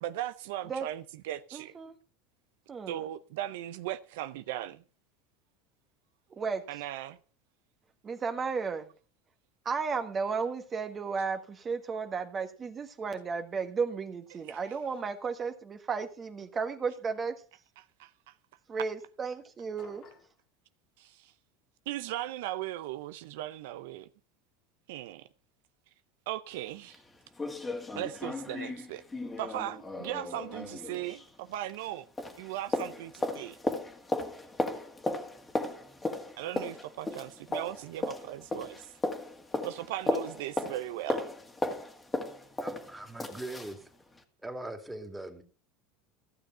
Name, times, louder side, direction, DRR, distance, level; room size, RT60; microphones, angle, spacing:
voice 1, 0.0-1.7 2.9-4.8 6.7-7.2 14.5-14.6 17.8-18.3 21.0-21.3 21.9-24.1 24.9-25.3 26.3-27.0 28.0-29.0 29.4-32.1 32.4-33.6 36.4-38.9 39.6-41.2, right 14 dB, 80° right, 0.6 m, -38 dB
voice 2, 1.5-2.0 2.7-3.0 6.4-6.6 8.0-8.9 9.6-17.3 18.7-20.0, right 5 dB, 25° right, 1.3 m, -34 dB
sound 1, 19.8-20.4, left 7 dB, 45° left, 2.3 m, -54 dB
sound 2, 26.5-26.6 26.9-27.0 27.4-31.9 32.2-43.8 44.2-44.3, left 2 dB, 15° left, 1.9 m, -36 dB
voice 3, 42.6-43.8 44.4-45.4, right 2 dB, 5° right, 2.4 m, -41 dB
14.5 x 6.7 x 5.6 m
supercardioid pair, 115°, 0 cm